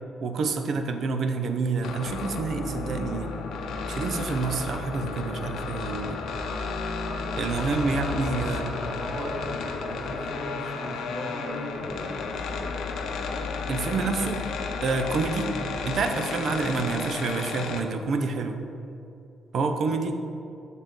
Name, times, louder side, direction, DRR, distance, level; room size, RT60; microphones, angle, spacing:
voice 1, 0.2-3.3 3.9-6.2 7.4-8.6 13.7-14.4 14.8-15.5 15.8-18.6 19.5-20.2, right 4 dB, 60° right, 6 dB, 0.6 m, -28 dB
sound 1, 1.8-17.8, left 4 dB, 75° left, 0.7 m, -32 dB
voice 2, 8.7-12.3, right 1 dB, 25° right, -2 dB, 1.8 m, -37 dB
12.0 x 4.1 x 3.8 m, 2.7 s
cardioid pair, 90°, 0 cm